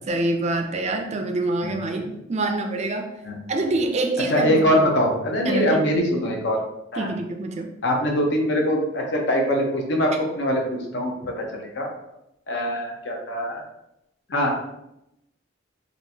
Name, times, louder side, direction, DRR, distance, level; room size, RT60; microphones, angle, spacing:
voice 1, 0.1-3.1 3.5-4.6 5.4-5.8 7.0-7.7, right 2 dB, 35° right, 5 dB, 0.4 m, -25 dB
voice 2, 4.3-6.6 6.9-7.1 7.8-10.1 10.3-11.9 12.5-13.6 14.3-14.5, equal, 60° left, 1 dB, 0.7 m, -23 dB
3.6 x 2.5 x 2.7 m, 0.84 s
head